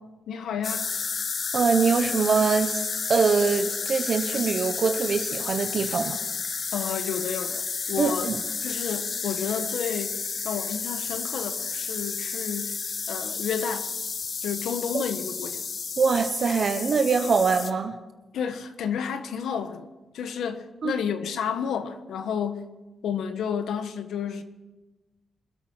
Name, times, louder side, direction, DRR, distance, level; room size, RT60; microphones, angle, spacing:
voice 1, 0.3-0.9 6.7-8.3 8.6-10.2 10.4-12.8 13.1-13.9 14.4-15.7 18.3-19.9 20.1-22.7 23.0-24.4, left 7 dB, 90° left, 1.2 m, -31 dB
sound 1, 0.6-17.7, left 5 dB, 45° left, 0.9 m, -31 dB
voice 2, 1.5-6.2 8.0-8.4 14.9-15.0 16.0-17.9 20.8-20.9, right 5 dB, 50° right, 1.0 m, -23 dB
25.0 x 8.6 x 6.1 m
cardioid pair, 120°, 0 cm